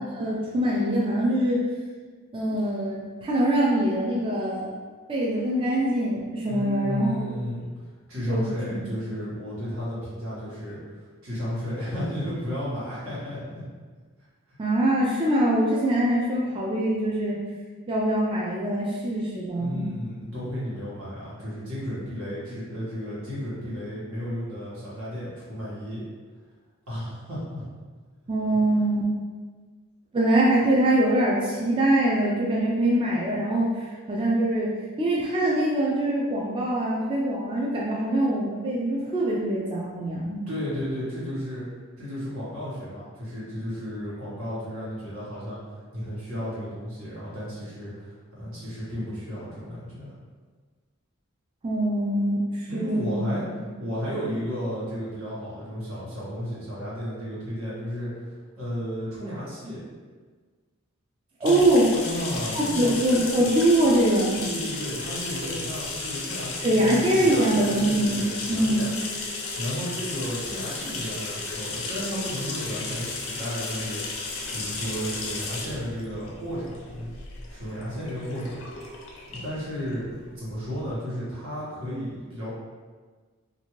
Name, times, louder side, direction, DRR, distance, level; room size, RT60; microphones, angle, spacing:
voice 1, 0.0-1.6 2.3-4.7 5.1-7.3 8.3-8.9 14.6-17.4 17.9-19.8 28.3-29.1 30.1-40.4 51.6-53.2 61.4-61.9 62.5-64.5 66.6-68.8, right 1 dB, 25° right, -4 dB, 0.3 m, -23 dB
voice 2, 6.4-7.7 8.1-10.8 11.2-13.6 19.6-26.0 26.9-27.6 40.5-41.6 42.0-45.6 45.9-50.1 52.7-53.5 53.8-58.1 58.5-59.8 61.4-61.6 61.9-62.9 64.4-68.9 69.6-74.0 74.5-77.1 77.5-78.6 79.3-82.5, equal, 85° right, -9 dB, 1.3 m, -33 dB
sound 1, 61.4-80.9, left 3 dB, 70° left, 0.5 m, -34 dB
2.6 x 2.4 x 3.0 m, 1.5 s
head